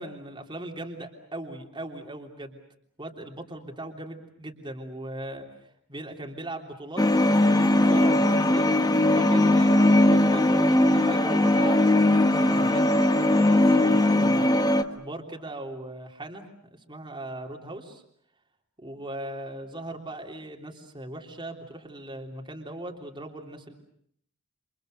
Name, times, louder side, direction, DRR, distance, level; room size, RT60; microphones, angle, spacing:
voice 1, 0.0-2.6 3.0-5.5 5.9-8.7 9.1-14.5 15.0-16.4 16.9-18.0 18.8-23.7, right 1 dB, 25° right, 2 dB, 3.3 m, -39 dB
sound 1, 7.0-14.8, left 1 dB, 20° left, 1.4 m, -20 dB
29.0 x 27.5 x 6.6 m, 0.67 s
head